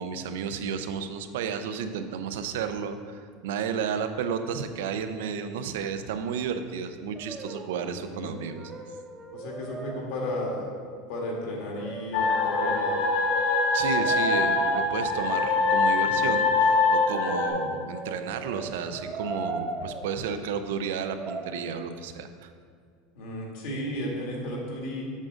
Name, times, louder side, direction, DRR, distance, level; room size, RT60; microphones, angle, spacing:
voice 1, 0.0-8.7 13.7-22.5, right 6 dB, 85° right, 9 dB, 0.5 m, -32 dB
Brass instrument, 7.2-7.8 8.1-10.6 11.6-14.8 16.2-20.0 21.0-21.5, right 2 dB, 15° right, 0.6 m, -38 dB
voice 2, 7.8-8.3 9.3-10.7 11.1-13.0 23.2-25.1, left 1 dB, 55° left, -1 dB, 1.7 m, -34 dB
sound 1, 12.1-17.5, left 3 dB, 85° left, 2.0 m, -23 dB
7.4 x 3.8 x 6.2 m, 2.1 s
supercardioid pair, 175°, 0 cm